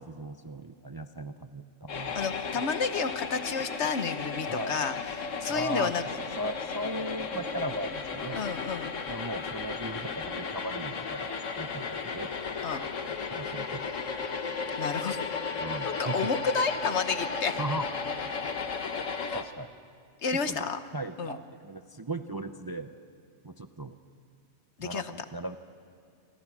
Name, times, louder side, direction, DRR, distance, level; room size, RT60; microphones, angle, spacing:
voice 1, 0.0-2.2 2.6-2.7 4.5-4.8 5.5-5.9 6.4-8.5 9.1-12.3 13.3-13.9 15.6-16.3 17.6-17.9 19.3-19.7 20.3-20.7 20.9-22.9 23.4-24.0 24.8-25.6, right 1 dB, 25° right, 8 dB, 0.6 m, -37 dB
sound 1, 1.9-19.4, left 5 dB, 85° left, 1.6 m, -34 dB
voice 2, 2.1-4.9 5.2-6.0 8.4-8.9 12.6-12.8 14.8-15.2 15.8-17.6 19.0-19.1 20.2-20.8 21.2-21.4 24.8-25.1, left 5 dB, 65° left, 10 dB, 1.3 m, -31 dB
27.5 x 25.5 x 6.2 m, 2.3 s
omnidirectional pair, 1.3 m